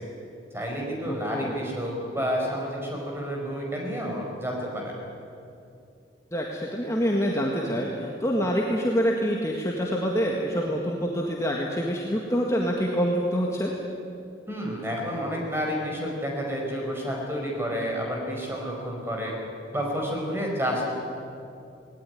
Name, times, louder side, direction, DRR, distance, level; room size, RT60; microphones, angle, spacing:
voice 1, 0.5-4.9 14.5-19.3 19.7-20.9, equal, 15° right, -1 dB, 5.1 m, -30 dB
voice 2, 1.1-1.6 6.3-13.7, equal, 15° left, -1 dB, 1.8 m, -26 dB
19.5 x 18.5 x 9.8 m, 2.6 s
head